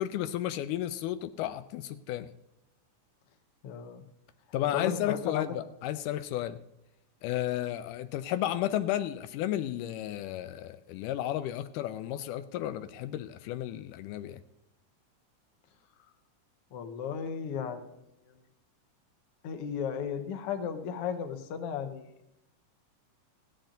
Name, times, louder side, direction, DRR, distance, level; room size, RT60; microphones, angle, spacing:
voice 1, 0.0-2.3 4.5-6.6 7.2-14.4, left 12 dB, 85° left, 2.1 m, -33 dB
voice 2, 3.6-4.0 4.7-5.4 16.7-17.8 19.4-22.1, left 7 dB, 60° left, 1.6 m, -34 dB
16.0 x 10.5 x 3.9 m
omnidirectional pair, 3.7 m